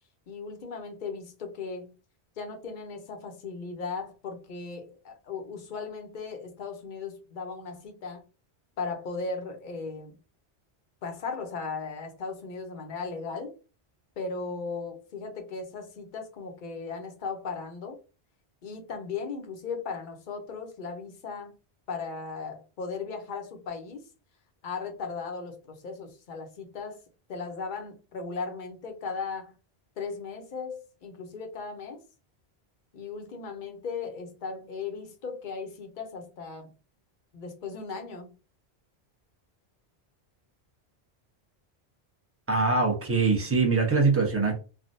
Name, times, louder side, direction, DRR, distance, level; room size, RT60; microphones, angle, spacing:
voice 1, 0.3-1.9 2.4-8.2 8.8-10.2 11.0-13.5 14.2-18.0 18.6-21.6 21.9-24.0 24.6-27.0 27.3-29.6 30.0-32.0 32.9-36.7 37.3-38.3, left 4 dB, 55° left, 0.8 m, -37 dB
voice 2, 42.5-44.6, right 4 dB, 15° right, 0.8 m, -23 dB
3.4 x 2.2 x 2.6 m
omnidirectional pair, 1.1 m